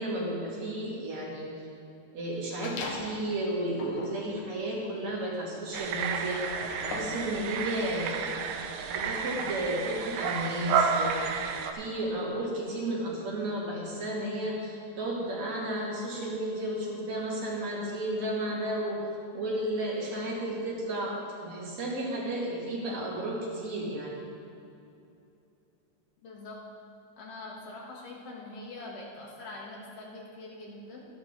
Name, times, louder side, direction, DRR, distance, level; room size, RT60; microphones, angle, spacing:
voice 1, 0.0-1.7 2.1-6.4 6.8-8.3 8.9-11.4 11.7-19.1 19.3-21.1 21.4-24.2, right 1 dB, 70° right, -5 dB, 3.6 m, -33 dB
sound 1, 2.6-3.2 3.7-7.3, left 4 dB, 90° left, 2.5 m, -41 dB
sound 2, 5.7-11.7, right 6 dB, 85° right, 2.1 m, -31 dB
voice 2, 26.2-26.6 27.2-31.1, left 2 dB, 60° left, -3 dB, 2.6 m, -43 dB
13.0 x 11.0 x 4.0 m, 2.7 s
omnidirectional pair, 3.3 m